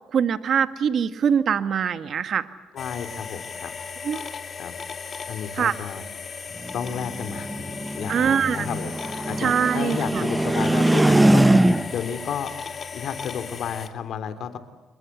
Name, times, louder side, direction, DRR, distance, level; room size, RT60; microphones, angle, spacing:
voice 1, 0.1-2.5 4.0-4.2 5.6-5.7 8.1-8.7 9.4-10.2, right 7 dB, 60° right, 11 dB, 1.4 m, -23 dB
voice 2, 2.7-3.7 4.6-4.7 5.3-6.0 6.7-7.6 7.9-12.5 12.9-14.6, left 8 dB, 70° left, 10 dB, 3.2 m, -32 dB
sound 1, 2.8-13.9, left 5 dB, 45° left, 2.7 m, -37 dB
sound 2, 6.6-12.1, right 1 dB, 10° right, 1.0 m, -21 dB
28.5 x 22.5 x 8.6 m, 1.2 s
cardioid pair, 90°, 0 cm